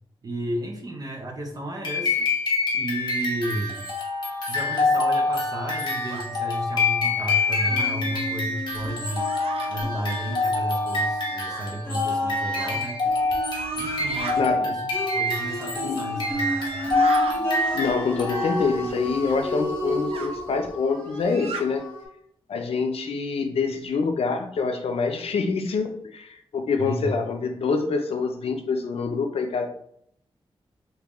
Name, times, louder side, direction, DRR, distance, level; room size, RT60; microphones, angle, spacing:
voice 1, 0.2-2.3 2.7-3.8 4.5-9.3 9.7-13.0 13.8-14.8 15.1-16.8 26.8-27.1, right 1 dB, 40° right, 2 dB, 0.6 m, -33 dB
sound 1, 1.8-18.9, left 3 dB, 50° left, 0.9 m, -26 dB
sound 2, 6.1-6.3 7.1-8.0 9.0-9.7 11.5-11.7 12.6-12.8 13.5-14.4 16.1-17.4 19.2-19.4 20.1-20.3 21.1-21.6, right 5 dB, 75° right, 0.4 m, -36 dB
sound 3, 7.7-11.4 11.8-22.1, equal, 15° left, 1.4 m, -34 dB
voice 2, 17.7-21.9 22.5-29.7, left 4 dB, 85° left, 5 dB, 0.5 m, -26 dB
3.6 x 2.6 x 3.0 m, 0.69 s
wide cardioid pair, 165°, 10 cm